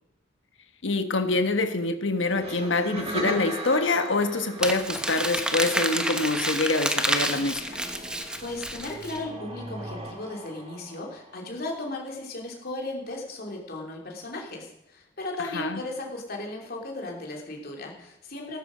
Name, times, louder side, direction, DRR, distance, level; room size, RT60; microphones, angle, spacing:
voice 1, 0.8-7.8 15.5-15.8, left 3 dB, 85° left, 8 dB, 1.3 m, -25 dB
sound 1, 2.2-5.8 7.2-11.8, right 1 dB, 35° right, 2.1 m, -38 dB
Crumpling crinkling, 4.6-9.2, right 1 dB, 5° right, 1.0 m, -29 dB
voice 2, 8.4-18.6, left 2 dB, 55° left, 0 dB, 3.0 m, -36 dB
14.5 x 13.0 x 5.0 m, 0.88 s
head